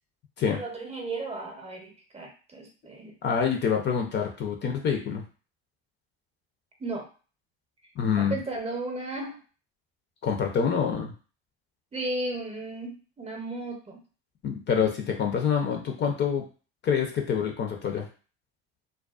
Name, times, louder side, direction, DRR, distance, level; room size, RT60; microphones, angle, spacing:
voice 1, 0.5-3.1 6.8-7.1 8.2-9.4 11.9-14.0, right 2 dB, 20° right, 1 dB, 0.7 m, -35 dB
voice 2, 3.2-5.2 8.0-8.4 10.2-11.1 14.4-16.5 16.8-18.1, left 7 dB, 40° left, 3 dB, 0.5 m, -26 dB
2.4 x 2.2 x 2.4 m, 0.37 s
supercardioid pair, 85°, 30 cm